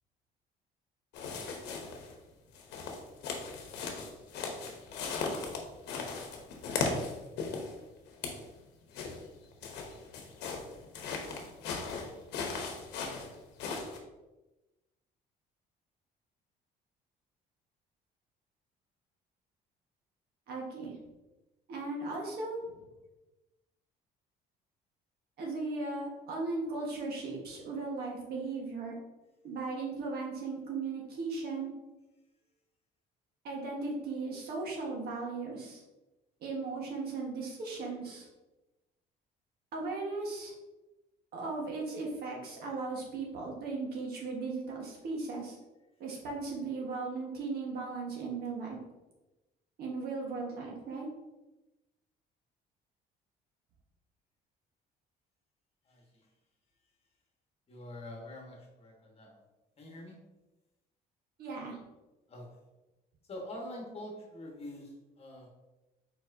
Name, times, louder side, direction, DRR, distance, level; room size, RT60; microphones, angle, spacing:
sound 1, 1.1-2.1 2.5-7.7 8.1-8.5 8.9-14.0, left 4 dB, 85° left, 0.9 m, -37 dB
voice 1, 20.5-20.9 21.7-22.7 25.4-28.9 29.4-31.7 33.4-35.8 36.4-38.3 39.7-40.5 41.3-45.6 46.0-48.8 49.8-51.1 61.4-61.8, right 3 dB, 65° right, -1 dB, 1.3 m, -37 dB
voice 2, 55.8-56.3 57.7-59.4 59.8-60.2 62.3-62.5 63.3-65.5, left 1 dB, 35° left, 0 dB, 1.3 m, -45 dB
4.5 x 4.4 x 2.6 m, 1.1 s
cardioid pair, 110°, 17 cm